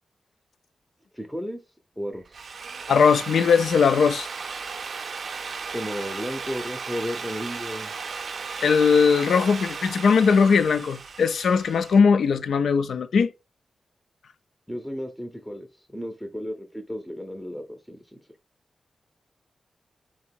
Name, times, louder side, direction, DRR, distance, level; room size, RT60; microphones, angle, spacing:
voice 1, 1.1-1.6 2.0-2.4 5.7-7.9 14.7-15.7 15.9-18.2, equal, ahead, 0.5 m, -33 dB
Drill, 2.1-12.0, right 5 dB, 60° right, 0.4 m, -35 dB
voice 2, 2.9-4.3 8.6-13.3, left 5 dB, 85° left, 0.4 m, -19 dB
3.4 x 2.9 x 4.5 m
wide cardioid pair, 120°, 0 cm